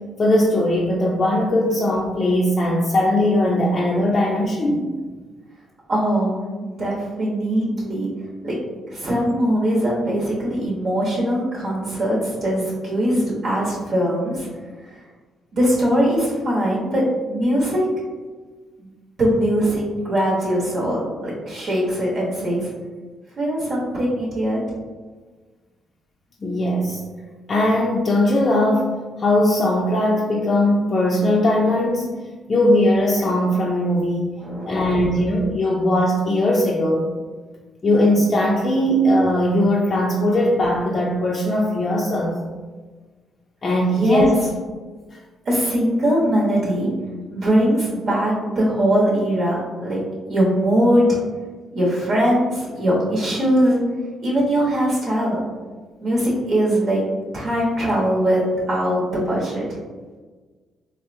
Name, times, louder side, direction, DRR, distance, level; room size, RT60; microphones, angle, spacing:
voice 1, 0.2-4.8 26.4-27.0 27.5-32.1 32.5-34.3 34.7-37.1 37.8-42.4 43.6-44.3, left 1 dB, 40° left, -4 dB, 0.4 m, -19 dB
voice 2, 5.9-8.1 8.4-8.5 8.9-14.5 14.9-15.0 15.5-17.8 18.8-18.9 19.2-22.7 23.4-24.6 34.4-34.9 43.9-44.3 45.4-46.9 47.3-50.0 50.3-51.2 51.7-53.8 54.2-55.4 56.0-57.0 57.3-58.4 58.7-59.8, equal, 55° right, -6 dB, 0.9 m, -21 dB
3.6 x 2.0 x 2.6 m, 1.4 s
cardioid pair, 90°, 0 cm